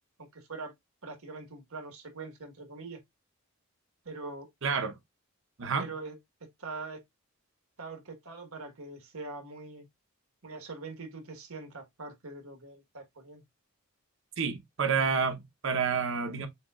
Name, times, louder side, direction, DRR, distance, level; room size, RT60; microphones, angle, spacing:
voice 1, 0.2-0.7 1.0-3.0 4.0-4.5 5.8-6.1 6.4-7.0 7.8-9.9 10.4-13.4, right 3 dB, 75° right, 1.6 m, -43 dB
voice 2, 4.6-5.0 5.6-5.9 14.4-16.5, right 5 dB, 60° right, 0.9 m, -29 dB
7.0 x 2.9 x 2.4 m
head